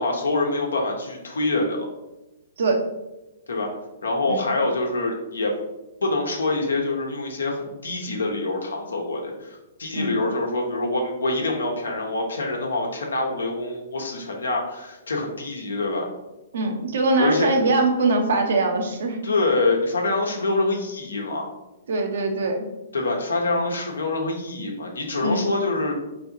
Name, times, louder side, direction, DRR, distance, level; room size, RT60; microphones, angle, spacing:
voice 1, 0.0-1.9 3.5-3.7 4.0-5.5 6.0-16.1 17.2-17.6 19.2-21.5 22.9-26.0, left 2 dB, 80° left, 1 dB, 1.0 m, -25 dB
voice 2, 16.5-19.2 21.9-22.7 25.2-25.4, right 2 dB, 65° right, 3 dB, 0.8 m, -22 dB
4.6 x 3.3 x 2.7 m, 1.0 s
hypercardioid pair, 125°, 0 cm